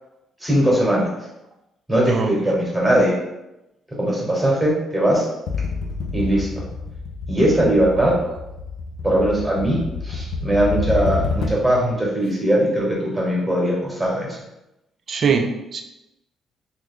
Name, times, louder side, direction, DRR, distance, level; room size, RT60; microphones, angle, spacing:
voice 1, 0.4-1.1 1.9-3.2 4.0-5.3 6.1-6.6 7.3-8.2 9.0-14.3, right 1 dB, 5° right, -4 dB, 1.0 m, -20 dB
voice 2, 2.1-2.5 15.1-15.8, right 5 dB, 45° right, 5 dB, 0.4 m, -22 dB
sound 1, 5.5-11.8, left 4 dB, 75° left, 0.4 m, -28 dB
3.0 x 2.3 x 3.6 m, 0.93 s
cardioid pair, 135°, 0 cm